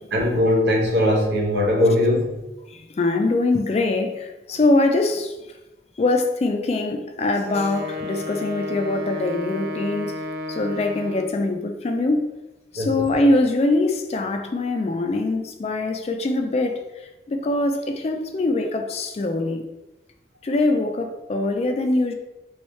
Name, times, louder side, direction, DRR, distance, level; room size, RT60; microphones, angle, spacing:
voice 1, 0.1-2.3 12.8-13.0, left 1 dB, 75° right, 0.9 m, -20 dB
voice 2, 2.7-5.3 6.0-10.2 10.5-12.2 12.7-16.8 17.3-19.6 20.4-22.1, left 2 dB, 35° left, 0.3 m, -23 dB
Wind instrument woodwind instrument, 7.4-11.5, left 2 dB, 55° right, 0.5 m, -32 dB
3.1 x 3.1 x 3.1 m
head